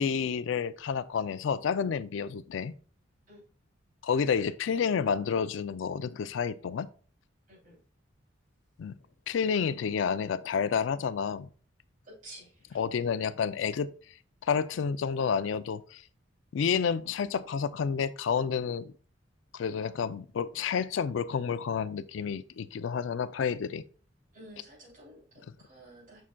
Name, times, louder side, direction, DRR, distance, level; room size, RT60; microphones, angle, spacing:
voice 1, 0.0-2.7 4.0-6.9 8.8-8.9 9.3-11.5 12.7-13.9 14.5-16.0 16.5-18.9 19.5-23.8, left 6 dB, 70° left, 0.4 m, -30 dB
voice 2, 12.0-12.8 24.3-26.2, right 1 dB, 40° right, 2.8 m, -51 dB
7.4 x 5.7 x 2.2 m
head